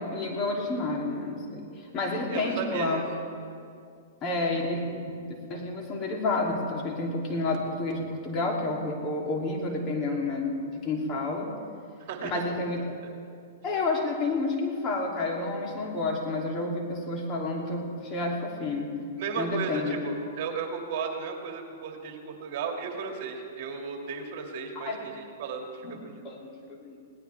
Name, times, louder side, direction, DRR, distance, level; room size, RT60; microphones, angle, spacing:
voice 1, 0.0-1.7 1.9-3.0 4.2-11.5 12.3-12.8 13.6-18.9 19.4-20.0 24.7-25.0 25.8-26.0 26.2-27.0, left 2 dB, 30° left, -1 dB, 2.9 m, -30 dB
voice 2, 2.3-3.0 12.0-12.5 12.8-12.9 19.2-26.2, right 5 dB, 55° right, 2 dB, 2.3 m, -35 dB
21.5 x 17.5 x 3.5 m, 2.3 s
hypercardioid pair, 130°, 0 cm